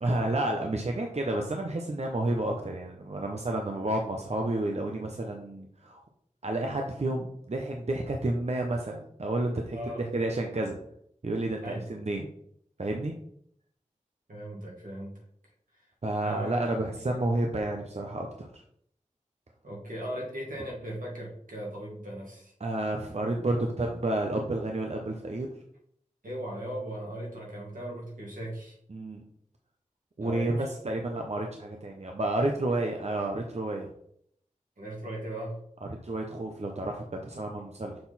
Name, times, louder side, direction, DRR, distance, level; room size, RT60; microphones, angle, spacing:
voice 1, 0.0-6.0 6.4-10.8 11.2-12.3 12.8-13.1 16.0-18.6 22.6-25.5 28.9-29.2 30.2-33.9 35.8-38.0, right 2 dB, 55° right, 2 dB, 0.8 m, -30 dB
voice 2, 9.7-10.1 11.6-12.0 14.3-15.1 16.2-16.7 17.0-17.2 19.6-22.5 26.2-28.8 30.2-30.5 34.8-35.6, right 1 dB, 85° right, -3 dB, 2.3 m, -38 dB
6.6 x 3.8 x 4.2 m, 0.67 s
wide cardioid pair, 45°, 14 cm